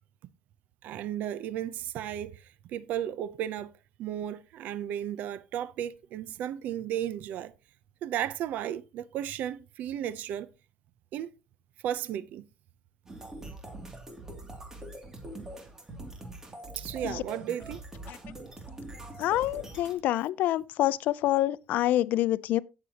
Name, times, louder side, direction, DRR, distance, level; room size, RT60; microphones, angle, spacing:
voice 1, 0.8-2.4 2.7-3.7 4.0-7.5 8.0-10.5 11.1-11.3 11.8-12.4 16.8-17.8, right 10 dB, 75° right, 0.6 m, -34 dB
sound 1, 13.1-19.9, right 1 dB, 15° right, 2.5 m, -43 dB
voice 2, 19.2-22.6, left 14 dB, 80° left, 0.5 m, -27 dB
17.0 x 6.8 x 2.9 m
cardioid pair, 140°, 3 cm